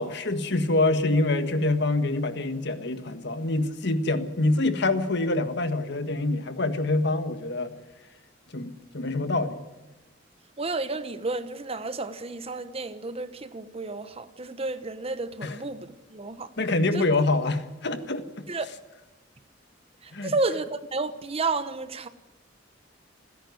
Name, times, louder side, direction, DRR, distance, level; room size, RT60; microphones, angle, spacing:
voice 1, 0.0-7.7 8.5-9.6 15.4-15.6 16.6-18.5 20.1-20.3, left 2 dB, 65° left, 1.7 m, -26 dB
voice 2, 10.6-16.5 16.9-17.0 18.5-18.7 20.0-22.1, right 3 dB, 30° right, 1.0 m, -31 dB
28.0 x 10.5 x 9.5 m
head